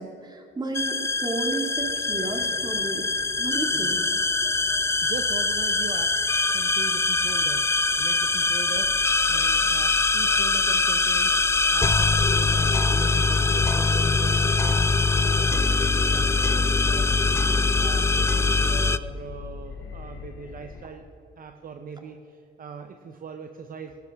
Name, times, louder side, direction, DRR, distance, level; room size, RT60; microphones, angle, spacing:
voice 1, 0.0-4.0, right 3 dB, 20° right, 2 dB, 2.1 m, -32 dB
sound 1, 0.8-19.0, left 3 dB, 15° left, 0.3 m, -23 dB
sound 2, 1.8-20.9, left 5 dB, 75° left, 1.1 m, -46 dB
voice 2, 3.7-4.1 4.6-4.7 5.0-8.9 9.3-14.9 15.2-21.0 21.4-24.0, right 6 dB, 45° right, 6 dB, 0.8 m, -40 dB
sound 3, 8.8-20.3, left 7 dB, 50° left, 0.8 m, -41 dB
16.5 x 11.5 x 3.6 m, 2.9 s
cardioid pair, 90°, 20 cm